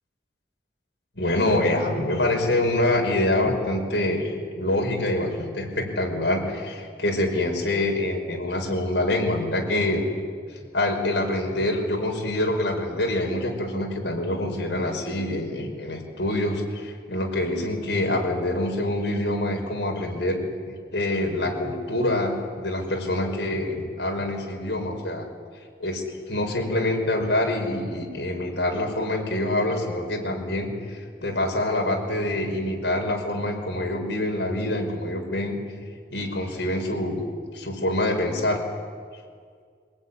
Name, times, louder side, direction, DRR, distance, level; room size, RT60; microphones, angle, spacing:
voice 1, 1.2-10.1 10.5-25.2 25.8-35.6 36.1-37.2 37.5-38.6, left 1 dB, 85° left, 1 dB, 5.4 m, -26 dB
24.5 x 20.5 x 10.0 m, 2.1 s
head